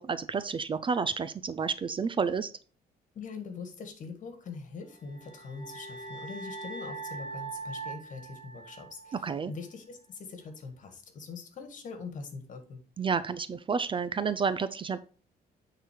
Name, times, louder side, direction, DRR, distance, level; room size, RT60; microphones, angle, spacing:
voice 1, 0.0-2.5 9.2-9.5 13.0-15.0, right 5 dB, 30° right, 14 dB, 0.5 m, -30 dB
voice 2, 3.1-12.8, left 4 dB, 50° left, 7 dB, 1.9 m, -43 dB
sound 1, 5.0-9.2, right 3 dB, 25° left, 2.2 m, -42 dB
9.2 x 4.0 x 4.6 m, 0.39 s
cardioid pair, 130°, 17 cm